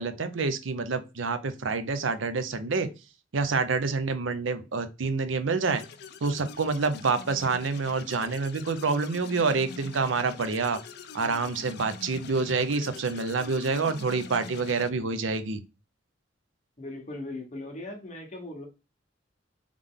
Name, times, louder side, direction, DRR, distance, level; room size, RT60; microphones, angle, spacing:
voice 1, 0.0-2.9 3.3-5.8 6.2-10.8 11.1-15.6, right 4 dB, 80° right, 10 dB, 0.6 m, -27 dB
sound 1, 5.6-14.9, left 5 dB, 60° left, 0.4 m, -44 dB
voice 2, 16.8-18.7, left 2 dB, 40° left, 1 dB, 1.3 m, -39 dB
3.6 x 3.3 x 3.7 m, 0.28 s
head